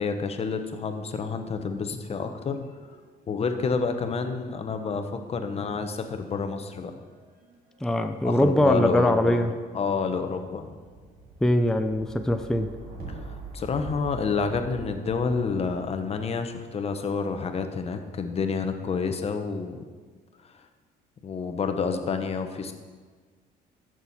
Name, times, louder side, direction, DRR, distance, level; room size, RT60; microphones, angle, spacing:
voice 1, 0.0-2.6 3.3-6.9 8.2-9.5 9.7-10.7 13.1-19.8 20.4-20.6 21.2-22.7, left 5 dB, 35° left, 7 dB, 1.0 m, -29 dB
sound 1, 0.9-2.2 2.5-17.5 18.3-18.9, right 2 dB, 65° right, 3.0 m, -46 dB
voice 2, 7.8-9.5 11.4-12.7, left 1 dB, 5° left, 7 dB, 0.5 m, -22 dB
14.0 x 6.3 x 4.2 m, 1.5 s
cardioid pair, 110°, 17 cm